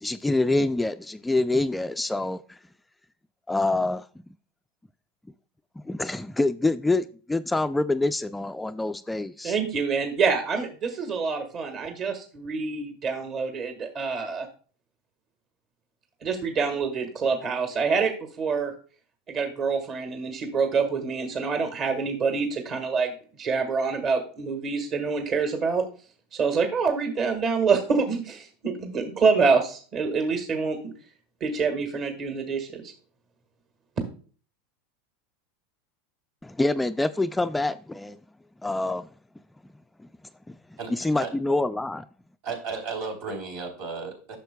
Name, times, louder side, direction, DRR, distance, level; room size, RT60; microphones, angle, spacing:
voice 1, 0.0-2.6 3.5-4.1 5.8-9.6 36.4-38.2 38.6-39.1 40.0-40.1 40.5-40.6 40.9-42.1, left 2 dB, 10° left, 0.3 m, -26 dB
voice 2, 9.4-14.5 16.2-18.1 18.4-18.7 19.3-23.1 23.4-25.8 26.3-30.9 31.4-32.9, right 5 dB, 45° right, 1.6 m, -26 dB
voice 3, 42.4-44.4, right 4 dB, 70° right, 3.3 m, -34 dB
10.5 x 6.6 x 2.3 m
hypercardioid pair, 105°, 0 cm